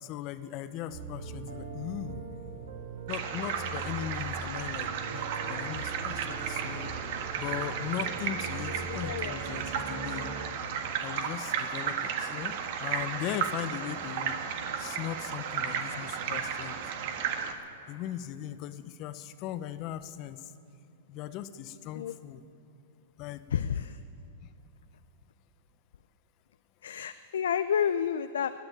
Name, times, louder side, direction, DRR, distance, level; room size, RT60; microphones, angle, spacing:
voice 1, 0.0-2.3 3.1-6.9 7.4-10.3 11.0-14.4 14.8-16.8 17.9-20.5 21.1-22.4 23.2-23.5, left 11 dB, 45° left, 12 dB, 0.9 m, -38 dB
sound 1, 0.9-10.5, right 5 dB, 85° right, 1.7 m, -41 dB
sound 2, 3.1-17.5, right 7 dB, 60° right, 1.6 m, -34 dB
voice 2, 8.7-9.4 21.9-22.1 23.5-24.0 26.8-28.5, left 8 dB, 80° left, 11 dB, 0.5 m, -30 dB
21.0 x 7.0 x 9.7 m, 2.6 s
hypercardioid pair, 120°, 0 cm